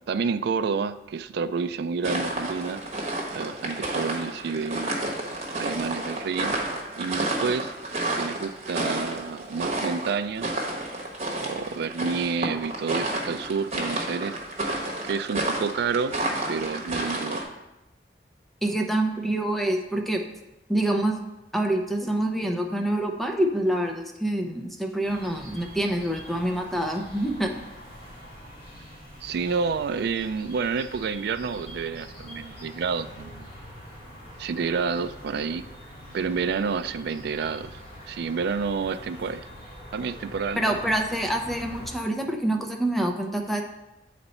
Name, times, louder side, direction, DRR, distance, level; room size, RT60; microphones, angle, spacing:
voice 1, 0.1-2.8 3.3-4.9 5.5-6.6 7.0-7.7 8.1-10.6 11.4-14.4 15.0-16.2 16.5-17.4 29.2-33.5 34.4-35.6 36.1-37.8 38.1-39.4 39.9-40.8, right 5 dB, 60° right, 12 dB, 0.3 m, -29 dB
sound 1, 2.0-17.4, right 2 dB, 35° right, 1.2 m, -30 dB
voice 2, 18.6-20.2 20.7-21.2 21.5-27.5 40.6-43.6, right 1 dB, ahead, 3 dB, 0.6 m, -26 dB
sound 2, 25.0-41.9, equal, 30° left, 2.4 m, -44 dB
7.8 x 4.1 x 4.2 m, 0.94 s
head